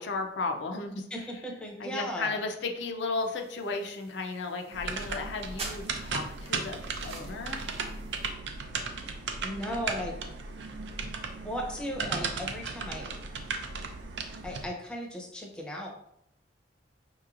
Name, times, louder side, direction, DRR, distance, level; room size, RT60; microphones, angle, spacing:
voice 1, 0.0-1.0 1.8-6.8 7.0-7.6, left 3 dB, 75° left, 4 dB, 0.5 m, -34 dB
voice 2, 0.9-2.4 9.4-10.2 11.4-13.1 14.4-15.9, equal, 5° left, -1 dB, 0.6 m, -36 dB
sound 1, 3.2-8.3, right 3 dB, 35° right, 0.7 m, -47 dB
sound 2, 4.7-14.7, right 4 dB, 75° right, 0.5 m, -36 dB
5.2 x 3.0 x 2.4 m, 0.76 s
head